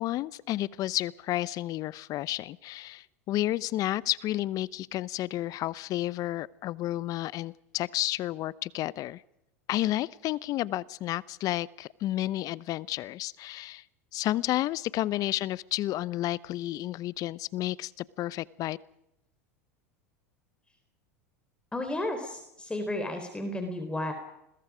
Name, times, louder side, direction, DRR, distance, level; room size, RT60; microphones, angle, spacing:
voice 1, 0.0-9.2 9.7-13.8 14.1-18.8, left 15 dB, 45° left, 20 dB, 0.9 m, -31 dB
voice 2, 21.7-24.1, left 1 dB, 10° left, 5 dB, 4.1 m, -33 dB
29.0 x 21.5 x 5.1 m, 0.82 s
hypercardioid pair, 95°, 8 cm